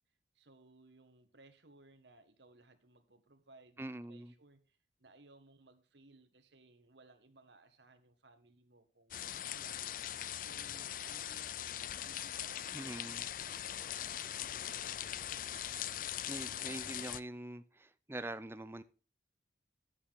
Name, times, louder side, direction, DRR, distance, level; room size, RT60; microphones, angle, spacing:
voice 1, 0.3-13.8 14.4-15.6, right 2 dB, 75° right, 1.6 m, -62 dB
voice 2, 3.8-4.3 12.7-13.2 16.3-18.8, right 1 dB, 15° right, 0.5 m, -44 dB
sound 1, 9.1-17.2, left 11 dB, 45° left, 0.4 m, -41 dB
11.5 x 8.4 x 3.6 m
head